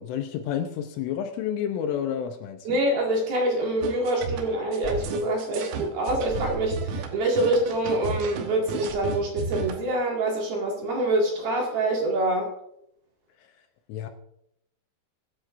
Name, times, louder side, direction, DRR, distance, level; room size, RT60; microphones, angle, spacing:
voice 1, 0.0-2.8 13.4-13.5 13.9-14.1, left 9 dB, 80° left, 6 dB, 3.1 m, -30 dB
voice 2, 2.7-12.5, right 1 dB, 55° right, -1 dB, 3.6 m, -25 dB
sound 1, 3.8-9.8, right 5 dB, 90° right, 4.1 m, -33 dB
22.5 x 10.0 x 2.6 m, 0.79 s
omnidirectional pair, 6.0 m